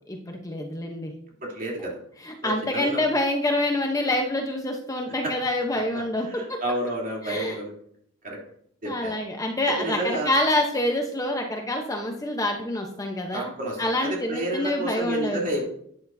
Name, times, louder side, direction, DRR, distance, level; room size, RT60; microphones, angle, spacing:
voice 1, 0.1-1.1 2.2-6.6 7.2-7.6 8.8-13.5 13.8-15.6, left 1 dB, 15° left, 2 dB, 0.8 m, -26 dB
voice 2, 1.4-2.0 2.4-3.0 5.2-5.3 5.9-7.7 8.2-8.4 8.8-9.2 9.6-10.3 13.3-15.7, right 1 dB, 40° right, -3 dB, 3.1 m, -30 dB
12.0 x 9.4 x 2.7 m, 0.68 s
head